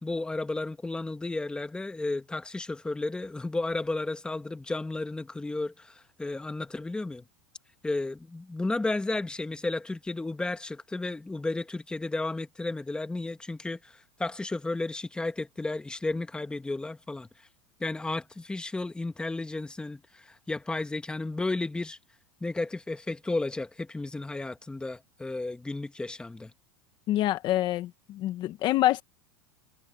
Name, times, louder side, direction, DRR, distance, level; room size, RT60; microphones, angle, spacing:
voice 1, 0.0-7.2 7.8-17.3 17.8-22.0 22.4-26.5, left 2 dB, 10° left, 1.7 m, -33 dB
voice 2, 27.1-29.0, left 14 dB, 45° left, 1.4 m, -26 dB
supercardioid pair, 125°, 11 cm